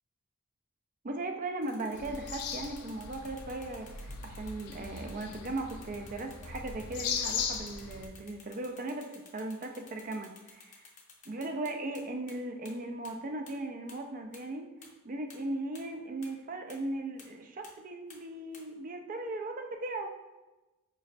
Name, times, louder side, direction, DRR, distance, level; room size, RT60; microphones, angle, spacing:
voice 1, 1.0-10.9 11.3-14.7 15.0-20.1, right 2 dB, 35° right, 4 dB, 0.4 m, -38 dB
sound 1, 1.6-12.0 12.3-12.4 12.6-12.7 13.0-13.1 13.5-13.6 13.9-14.0 14.3-14.4 14.8-14.9 15.3-15.4 15.7-15.8 16.2-16.3 16.7-16.8 17.2-17.3 17.6-17.7 18.1-18.2 18.5-18.6, left 5 dB, 35° left, 0.6 m, -53 dB
sound 2, 1.9-8.1, left 6 dB, 85° left, 0.5 m, -39 dB
5.0 x 3.1 x 2.5 m, 1.1 s
head